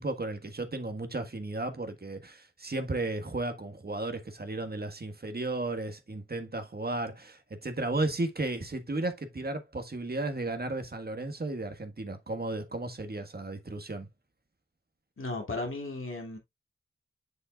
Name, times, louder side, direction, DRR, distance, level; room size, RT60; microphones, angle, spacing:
voice 1, 0.0-14.1, right 2 dB, 50° right, 1.5 m, -34 dB
voice 2, 15.2-16.4, left 2 dB, 75° left, 2.5 m, -35 dB
7.7 x 6.6 x 2.4 m
wide cardioid pair, 60°, 21 cm